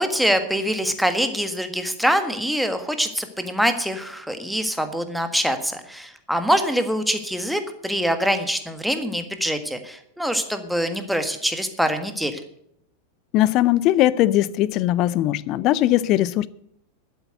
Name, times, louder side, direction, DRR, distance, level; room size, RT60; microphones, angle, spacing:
voice 1, 0.0-12.4, equal, ahead, 1.6 m, -24 dB
voice 2, 13.3-16.5, left 14 dB, 40° left, 0.5 m, -19 dB
12.0 x 8.3 x 7.9 m
figure-of-eight pair, 90°, 0 cm